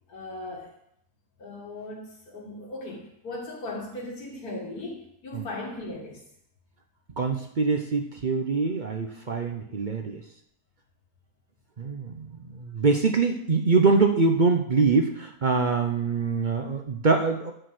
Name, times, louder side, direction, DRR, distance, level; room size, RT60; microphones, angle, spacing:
voice 1, 0.1-0.7 1.4-6.2, left 2 dB, 90° left, -3 dB, 2.4 m, -38 dB
voice 2, 7.2-10.2 11.8-17.5, right 4 dB, 45° right, 4 dB, 0.6 m, -24 dB
10.5 x 4.7 x 7.8 m, 0.71 s
omnidirectional pair, 1.6 m